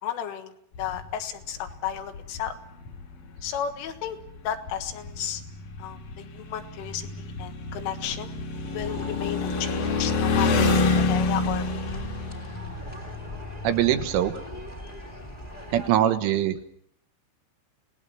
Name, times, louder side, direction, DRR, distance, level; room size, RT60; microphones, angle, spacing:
voice 1, 0.0-2.6 3.4-4.2 4.5-5.4 5.8-8.3 8.7-10.7 11.1-12.1, left 9 dB, 75° left, 6 dB, 3.9 m, -33 dB
sound 1, 0.7-1.1 1.6-2.5 2.9-3.0 3.4-3.6 4.3-4.4 4.5-14.4, left 3 dB, 55° left, 2.7 m, -28 dB
sound 2, 8.5-15.9, equal, 25° left, 1.1 m, -40 dB
voice 2, 13.7-14.3 15.7-16.8, right 11 dB, 80° right, 8 dB, 3.5 m, -23 dB
28.0 x 19.0 x 6.3 m, 0.67 s
omnidirectional pair, 5.8 m